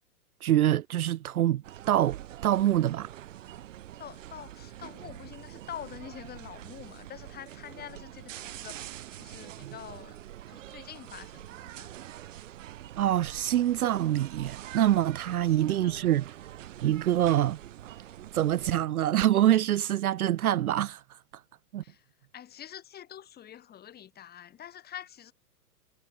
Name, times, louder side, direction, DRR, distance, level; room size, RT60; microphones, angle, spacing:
voice 1, 0.4-2.2 2.4-3.1 13.0-16.3 16.8-17.6 18.3-21.0 21.7-21.8, right 12 dB, 70° right, 0.5 m, -25 dB
sound 1, 1.6-18.9, right 12 dB, 55° right, 5.2 m, -45 dB
voice 2, 4.0-10.2 10.5-12.0 15.3-16.0 21.8-22.0 22.3-25.3, left 10 dB, 20° left, 4.6 m, -46 dB
figure-of-eight pair, 115°, 46 cm